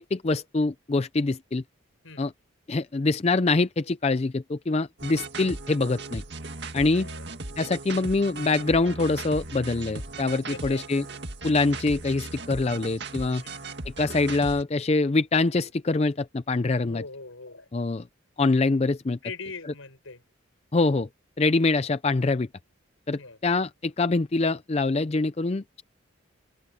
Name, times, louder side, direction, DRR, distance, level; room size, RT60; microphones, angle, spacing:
voice 1, 0.0-1.6 2.2-2.3 2.7-6.2 6.7-7.1 7.6-11.0 11.4-13.4 14.0-17.0 17.7-18.1 18.4-19.2 20.7-21.1 21.4-22.5 23.1-25.8, left 3 dB, 30° left, 0.4 m, -24 dB
sound 1, 5.0-14.6, right 3 dB, 55° right, 2.3 m, -38 dB
voice 2, 10.5-10.9 13.4-13.6 16.8-17.7 19.2-20.2 23.1-23.4, left 4 dB, 80° left, 6.1 m, -41 dB
open air
head